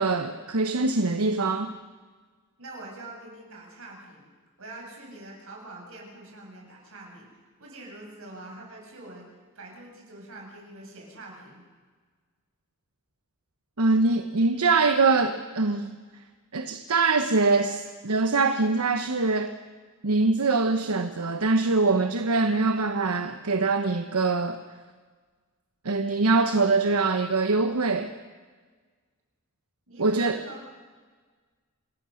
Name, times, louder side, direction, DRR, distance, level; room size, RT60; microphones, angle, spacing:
voice 1, 0.0-1.7 13.8-16.0 16.5-19.6 20.0-24.6 25.8-28.1 30.0-30.4, right 3 dB, 90° right, 7 dB, 1.1 m, -23 dB
voice 2, 2.6-4.3 4.6-9.2 9.5-11.6 29.9-30.8, right 2 dB, 65° right, -1 dB, 7.4 m, -44 dB
27.5 x 19.5 x 6.5 m, 1.5 s
head